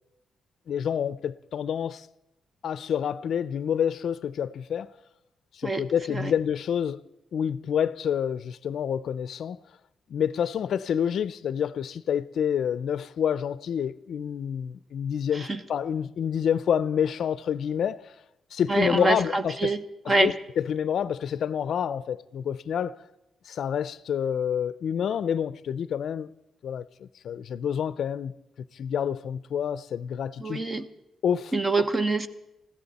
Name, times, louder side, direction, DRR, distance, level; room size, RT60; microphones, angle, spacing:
voice 1, 0.7-2.1 2.6-4.9 5.5-7.0 7.3-9.6 10.1-18.1 18.5-19.7 20.2-23.0 23.5-26.3 26.6-28.3 28.7-30.6 31.2-31.5, left 8 dB, 60° left, 0.5 m, -28 dB
voice 2, 5.6-6.3 15.3-15.6 18.7-19.8 20.1-20.3 30.4-30.9 31.5-32.3, right 3 dB, 25° right, 0.9 m, -26 dB
21.0 x 15.5 x 4.2 m
wide cardioid pair, 160°, 0 cm